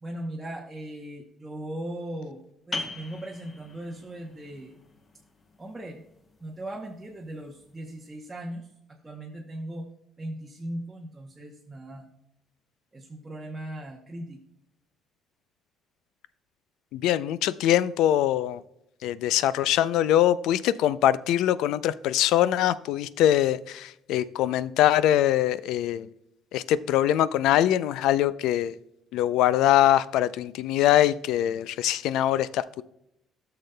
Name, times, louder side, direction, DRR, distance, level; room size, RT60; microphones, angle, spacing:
voice 1, 0.0-4.8 5.6-6.0 6.4-9.9 10.2-12.1 12.9-14.4, right 1 dB, 15° right, 0 dB, 0.8 m, -38 dB
sound 1, 2.7-8.1, left 3 dB, 30° left, 0.9 m, -42 dB
voice 2, 16.9-18.6 19.0-26.1 26.5-28.7 29.1-32.8, left 12 dB, 80° left, 17 dB, 0.3 m, -23 dB
13.0 x 6.7 x 2.2 m, 0.80 s
cardioid pair, 135°, 0 cm